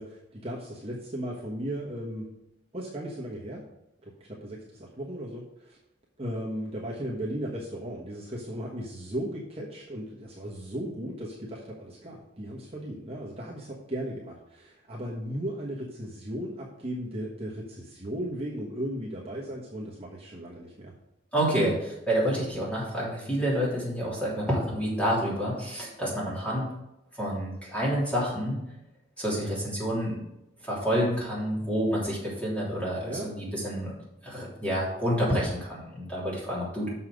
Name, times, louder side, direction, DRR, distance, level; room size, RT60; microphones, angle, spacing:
voice 1, 0.0-2.3 2.7-3.6 4.0-5.8 6.2-20.9 33.0-33.3 36.2-36.4, equal, 30° right, -4 dB, 1.3 m, -36 dB
voice 2, 21.3-26.7 27.1-28.6 29.2-30.2 30.6-33.9 34.2-36.9, equal, 5° left, -6 dB, 3.3 m, -28 dB
6.5 x 5.7 x 6.5 m, 0.89 s
head